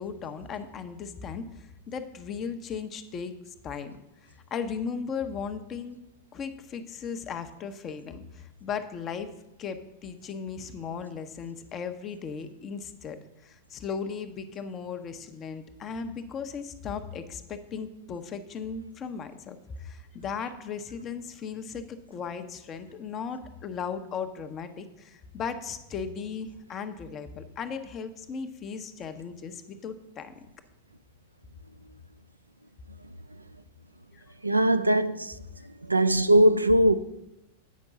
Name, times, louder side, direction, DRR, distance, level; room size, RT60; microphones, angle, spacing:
voice 1, 0.0-4.0 4.5-6.0 6.3-9.3 9.6-13.2 13.4-30.3 34.1-34.3, left 6 dB, 30° left, 0.7 m, -37 dB
voice 2, 34.4-36.9, right 1 dB, 85° right, 0.3 m, -21 dB
8.3 x 5.3 x 6.0 m
figure-of-eight pair, 90°, 0 cm